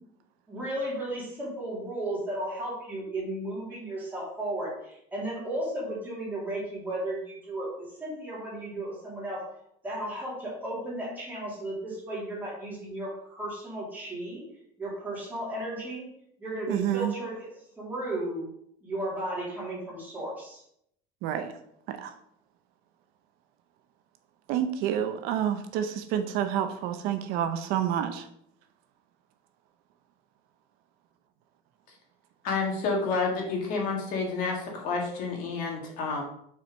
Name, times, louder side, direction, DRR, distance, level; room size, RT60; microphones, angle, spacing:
voice 1, 0.5-9.5 9.8-14.4 14.8-16.1 16.4-17.5 17.8-18.4 18.8-20.6, right 1 dB, 10° right, -6 dB, 2.6 m, -34 dB
voice 2, 16.7-17.1 21.2-21.5 21.9-22.1 24.5-28.3, right 10 dB, 60° right, 8 dB, 0.6 m, -29 dB
voice 3, 32.4-36.2, left 4 dB, 50° left, 0 dB, 1.7 m, -29 dB
5.9 x 4.5 x 5.2 m, 0.72 s
cardioid pair, 175°, 17 cm